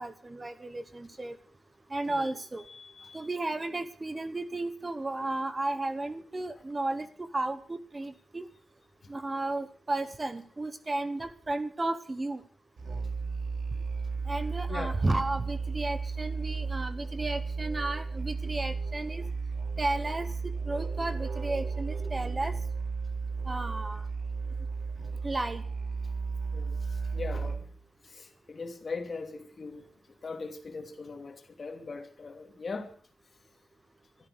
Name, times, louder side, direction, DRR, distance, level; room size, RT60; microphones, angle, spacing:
voice 1, 0.0-1.4 1.9-2.6 3.1-8.5 9.1-12.4 14.3-19.2 19.8-22.5 23.5-24.1 25.2-25.6, right 2 dB, 25° right, 1.0 m, -33 dB
voice 2, 2.7-3.3 14.7-15.0 26.5-27.6 28.0-29.9 30.2-32.9, left 4 dB, 45° left, 2.7 m, -40 dB
Musical instrument, 12.8-27.8, right 4 dB, 70° right, 4.0 m, -34 dB
15.5 x 13.5 x 6.4 m
wide cardioid pair, 150°, 0 cm